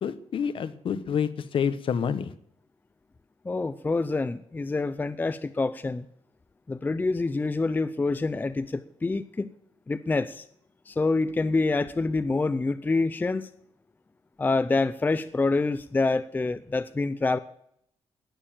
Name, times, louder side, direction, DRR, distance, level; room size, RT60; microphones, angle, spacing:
voice 1, 0.0-2.3, left 7 dB, 55° left, 13 dB, 1.0 m, -28 dB
voice 2, 3.4-6.1 6.7-9.5 9.9-10.4 10.9-13.5 14.4-17.4, left 3 dB, 15° left, 12 dB, 0.5 m, -26 dB
18.0 x 6.8 x 7.5 m, 0.71 s
wide cardioid pair, 155°, 10 cm